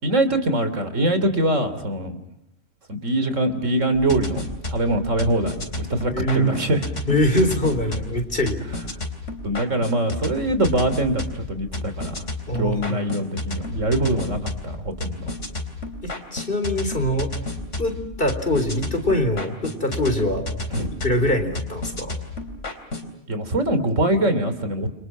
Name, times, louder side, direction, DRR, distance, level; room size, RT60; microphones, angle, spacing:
voice 1, 0.0-2.1 2.9-6.8 8.7-8.8 9.4-12.1 12.6-15.3 20.7-20.9 23.3-24.9, right 1 dB, 90° right, 11 dB, 3.5 m, -23 dB
sound 1, 3.9-23.1, left 2 dB, 75° left, 4.2 m, -32 dB
voice 2, 6.1-6.5 7.1-8.6 12.5-13.0 16.0-17.3 17.8-20.5 21.0-22.1, left 1 dB, 45° left, 7 dB, 4.2 m, -23 dB
30.0 x 26.0 x 6.2 m, 0.80 s
omnidirectional pair, 1.3 m